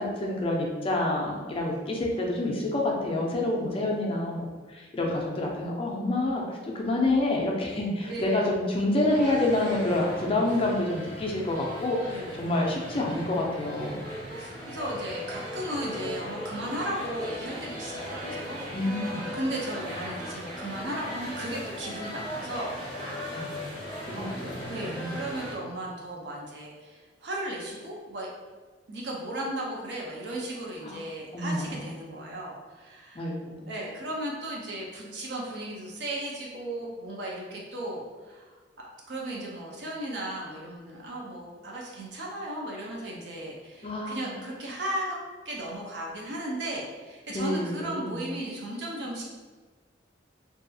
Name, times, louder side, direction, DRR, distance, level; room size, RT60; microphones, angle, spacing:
voice 1, 0.0-14.0 18.7-19.3 23.3-23.9 24.1-25.2 30.9-31.0 31.3-31.7 33.2-33.7 43.8-44.2 47.3-48.3, left 2 dB, 30° left, -1 dB, 0.4 m, -28 dB
voice 2, 8.0-8.5 12.1-12.4 14.0-18.7 19.3-22.8 24.1-24.3 24.7-28.3 28.9-33.3 33.7-38.6 39.1-45.2 45.4-49.2, right 1 dB, 70° right, -2 dB, 0.6 m, -36 dB
sound 1, 9.1-25.5, equal, 50° right, 1.2 m, -38 dB
2.6 x 2.3 x 2.6 m, 1.4 s
head